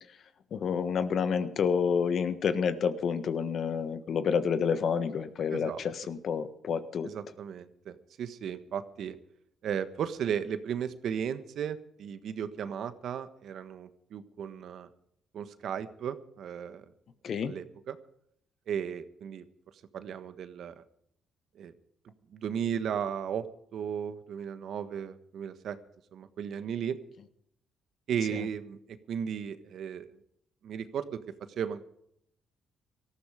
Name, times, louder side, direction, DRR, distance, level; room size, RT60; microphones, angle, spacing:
voice 1, 0.5-7.1 17.2-17.5, left 6 dB, 60° left, 11 dB, 1.5 m, -29 dB
voice 2, 7.0-9.2 9.6-14.9 15.3-16.8 17.5-18.0 18.7-19.4 19.9-20.8 21.5-21.7 22.3-23.5 23.7-25.8 26.1-27.0 28.1-30.1 30.6-31.2 31.5-31.8, right 8 dB, 70° right, 11 dB, 1.4 m, -35 dB
18.0 x 14.0 x 5.1 m, 0.72 s
cardioid pair, 90°, 0 cm